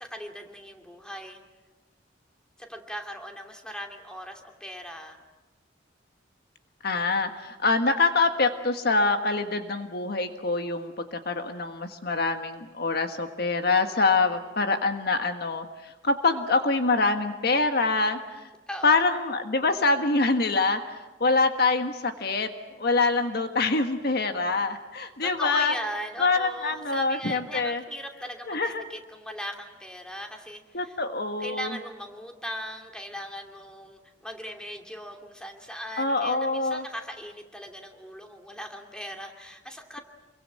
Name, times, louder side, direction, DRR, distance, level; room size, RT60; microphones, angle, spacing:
voice 1, 0.0-1.4 2.6-5.2 18.7-19.1 25.0-31.0 31.4-40.0, equal, 5° left, 3 dB, 2.7 m, -39 dB
voice 2, 6.8-18.5 18.8-22.5 22.8-25.7 26.2-27.8 28.5-28.8 30.7-31.8 36.0-36.8, left 3 dB, 55° left, 7 dB, 1.5 m, -25 dB
28.0 x 23.0 x 7.7 m, 1.2 s
head